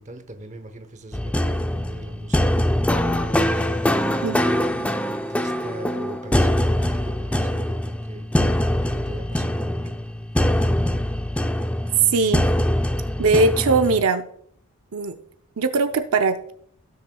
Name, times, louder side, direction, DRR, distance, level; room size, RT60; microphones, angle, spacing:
voice 1, 0.0-8.3 8.9-9.9, right 1 dB, 30° right, 8 dB, 0.8 m, -41 dB
sound 1, 1.1-14.0, left 1 dB, 5° left, 0.4 m, -23 dB
sound 2, 4.0-7.2 8.6-10.0, left 1 dB, 85° left, 2.1 m, -47 dB
voice 2, 12.0-12.5 13.2-14.2 14.9-15.1 15.6-16.5, right 3 dB, 70° right, 7 dB, 0.6 m, -20 dB
16.5 x 6.5 x 2.3 m, 0.67 s
head